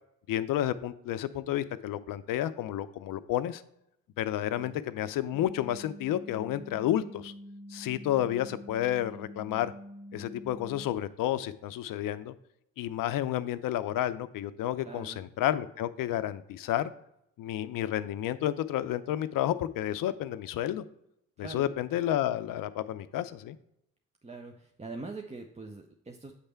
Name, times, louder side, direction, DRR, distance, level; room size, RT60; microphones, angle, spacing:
voice 1, 0.3-3.6 4.2-7.3 7.7-9.7 10.1-12.3 12.8-16.9 17.4-20.8 21.4-23.6, left 12 dB, 65° left, 14 dB, 0.5 m, -31 dB
sound 1, 5.3-10.8, equal, 55° right, 1.3 m, -46 dB
voice 2, 14.8-15.2 21.4-21.7 24.2-26.3, right 3 dB, 20° right, 3 dB, 0.7 m, -43 dB
8.2 x 3.3 x 4.4 m, 0.79 s
supercardioid pair, 50°, 36 cm